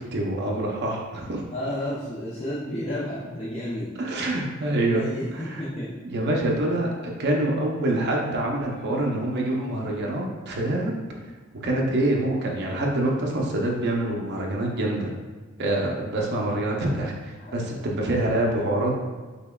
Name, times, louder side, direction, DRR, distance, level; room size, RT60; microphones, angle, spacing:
voice 1, 0.0-1.4 4.0-5.0 5.3-5.6 6.0-10.9 11.6-15.1 15.6-18.9, right 1 dB, 55° right, -1 dB, 0.6 m, -26 dB
voice 2, 1.5-3.9 4.8-5.9 17.4-17.9, left 1 dB, 30° left, -10 dB, 0.6 m, -32 dB
5.4 x 2.2 x 2.3 m, 1.4 s
head